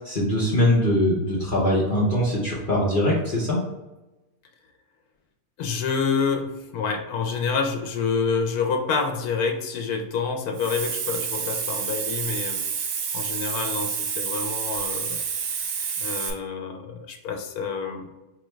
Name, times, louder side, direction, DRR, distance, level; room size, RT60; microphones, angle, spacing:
voice 1, 0.0-3.6, left 1 dB, 45° left, -6 dB, 0.8 m, -22 dB
voice 2, 5.6-12.6 13.1-15.2 16.0-18.1, left 5 dB, 85° left, 3 dB, 1.1 m, -27 dB
Hiss, 10.5-16.3, right 6 dB, 70° right, 0.9 m, -29 dB
4.9 x 2.3 x 3.1 m, 1.0 s
omnidirectional pair, 1.6 m